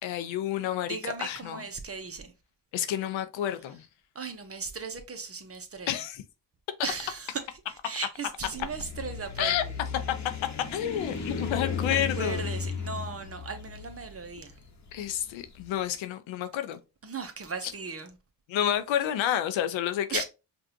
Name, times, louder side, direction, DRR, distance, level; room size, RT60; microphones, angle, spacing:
voice 1, 0.0-1.6 2.7-3.9 5.9-6.2 9.4-9.6 10.7-12.4 14.9-16.8 18.5-20.2, left 10 dB, 80° left, 0.7 m, -30 dB
voice 2, 0.9-2.3 4.1-6.0 6.8-9.8 11.9-14.6 17.0-18.2 20.1-20.2, right 5 dB, 30° right, 0.9 m, -37 dB
sound 1, 8.5-15.6, left 5 dB, 40° left, 1.0 m, -35 dB
5.2 x 2.5 x 2.7 m
supercardioid pair, 60°, 45 cm